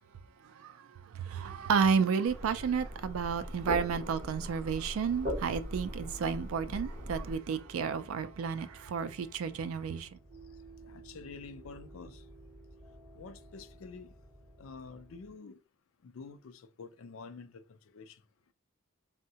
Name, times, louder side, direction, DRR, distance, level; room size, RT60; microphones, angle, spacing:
voice 1, 0.4-10.2, right 6 dB, 80° right, 0.3 m, -32 dB
sound 1, 2.3-7.4, equal, 40° right, 1.2 m, -40 dB
sound 2, 5.2-15.3, right 2 dB, ahead, 1.6 m, -54 dB
voice 2, 10.8-12.3 13.1-14.1 14.6-15.6 16.0-18.2, left 4 dB, 75° left, 0.4 m, -48 dB
3.6 x 2.1 x 2.7 m
head